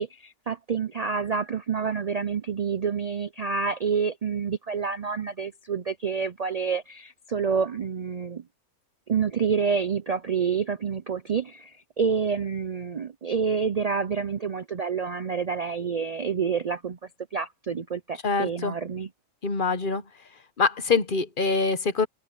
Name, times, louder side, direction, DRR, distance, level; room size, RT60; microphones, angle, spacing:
voice 1, 0.0-8.4 9.1-17.0 17.3-19.1, right 6 dB, 80° right, 0.3 m, -28 dB
voice 2, 18.2-18.7 19.4-20.0 20.6-22.1, left 4 dB, 40° left, 1.0 m, -24 dB
open air
omnidirectional pair, 1.5 m